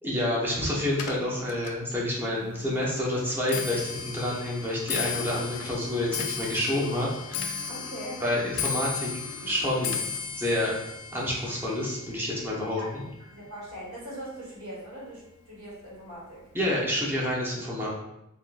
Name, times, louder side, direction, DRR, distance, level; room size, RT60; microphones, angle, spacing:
voice 1, 0.0-7.6 8.2-9.1 9.4-10.0 10.4-10.8 11.1-13.0 16.5-17.9, left 1 dB, 10° right, -5 dB, 0.7 m, -28 dB
Clock, 0.9-14.3 14.6-15.1 15.9-16.0 16.3-16.7 16.9-17.0, left 6 dB, 80° left, 0.4 m, -36 dB
voice 2, 7.7-8.2 12.7-16.4, equal, 75° right, -6 dB, 1.4 m, -41 dB
3.6 x 2.2 x 2.4 m, 0.87 s
head